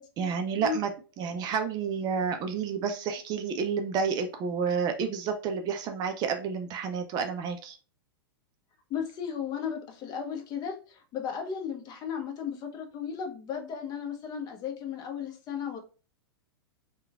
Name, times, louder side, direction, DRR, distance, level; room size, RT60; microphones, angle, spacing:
voice 1, 0.2-0.9 1.2-7.8, right 6 dB, 30° right, 5 dB, 0.4 m, -30 dB
voice 2, 8.9-15.8, left 7 dB, 30° left, 3 dB, 0.7 m, -35 dB
3.0 x 2.2 x 2.3 m, 0.35 s
hypercardioid pair, 105°, 13 cm